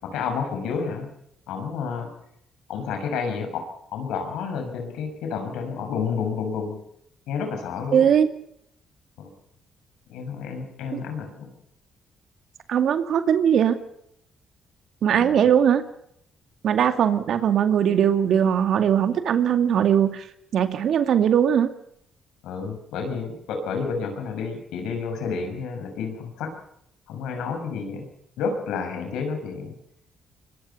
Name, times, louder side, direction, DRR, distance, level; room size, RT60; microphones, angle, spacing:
voice 1, 0.0-1.1 1.5-2.1 2.7-3.7 3.9-6.8 7.3-8.1 9.2-9.3 10.1-11.5 15.1-15.5 22.4-26.5 27.1-28.1 28.4-29.8, left 5 dB, 90° left, 5 dB, 6.4 m, -30 dB
voice 2, 7.9-8.3 10.9-11.0 12.7-13.8 15.0-15.8 16.6-20.2 20.5-21.7, right 8 dB, 70° right, 8 dB, 2.4 m, -20 dB
24.5 x 22.5 x 5.7 m, 0.74 s
cardioid pair, 90°, 0 cm